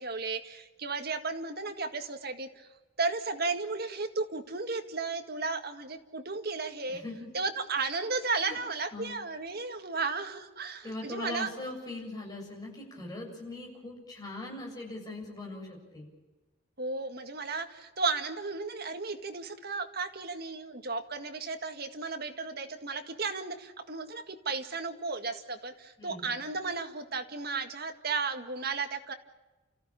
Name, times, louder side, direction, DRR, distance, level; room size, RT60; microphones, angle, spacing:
voice 1, 0.0-2.7 3.0-7.0 7.3-11.5 16.8-29.1, right 4 dB, 50° right, 6 dB, 1.9 m, -34 dB
voice 2, 6.9-7.3 8.4-8.6 8.9-9.2 10.8-16.1 26.0-26.3, left 2 dB, 20° left, 0 dB, 7.2 m, -40 dB
29.5 x 15.0 x 8.9 m, 1.2 s
head